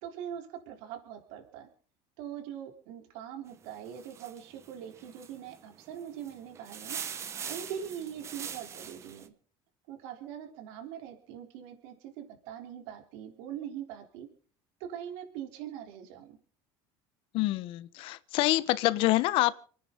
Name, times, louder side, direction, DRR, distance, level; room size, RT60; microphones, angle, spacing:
voice 1, 0.0-1.7 2.2-7.0 7.5-9.3 9.9-14.3 14.9-16.4, right 9 dB, 75° right, 3.9 m, -42 dB
sound 1, 3.5-9.3, right 7 dB, 25° right, 1.2 m, -42 dB
voice 2, 17.3-19.5, left 17 dB, 55° left, 1.0 m, -26 dB
29.5 x 10.0 x 4.0 m
cardioid pair, 165°, 11 cm